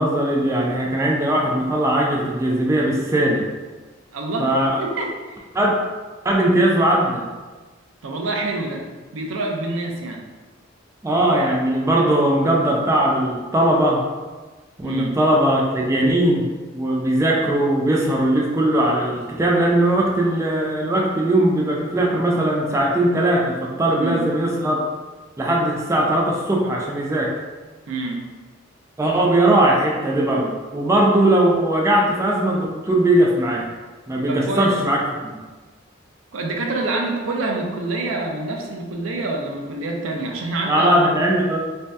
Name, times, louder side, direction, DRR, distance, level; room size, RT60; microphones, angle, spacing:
voice 1, 0.0-3.4 4.4-4.8 5.5-5.8 6.2-7.2 11.0-14.0 14.8-16.5 16.7-24.8 25.4-27.3 29.0-33.7 34.1-35.0 35.3-35.4 40.7-41.6, right 1 dB, 15° right, -2 dB, 0.3 m, -19 dB
voice 2, 4.1-4.5 4.8-5.5 8.0-8.8 9.1-10.2 14.8-15.2 23.9-24.2 27.9-28.3 34.3-34.8 36.3-41.0, right 2 dB, 90° right, 1 dB, 0.5 m, -27 dB
2.6 x 2.2 x 3.2 m, 1.3 s
head